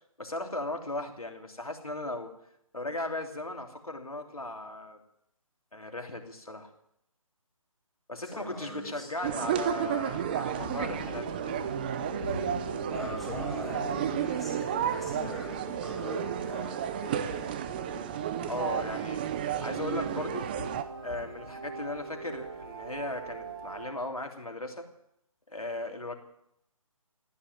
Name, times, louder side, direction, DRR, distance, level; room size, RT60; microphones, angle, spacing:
voice 1, 0.2-2.3 2.7-5.0 5.7-6.7 8.1-11.5 18.4-19.2 19.6-20.5 21.0-24.9 25.5-26.1, left 2 dB, 85° left, 2 dB, 3.2 m, -37 dB
voice 2, 8.2-9.1 12.5-17.6 17.9-18.1, left 1 dB, ahead, -5 dB, 3.2 m, -42 dB
sound 1, 9.2-20.8, right 9 dB, 15° right, 0.6 m, -32 dB
Thunder, 10.6-23.9, left 3 dB, 35° left, 2.9 m, -47 dB
sound 2, 10.9-23.9, right 5 dB, 45° right, 1.9 m, -42 dB
15.0 x 10.0 x 9.1 m, 0.77 s
figure-of-eight pair, 145°, 18 cm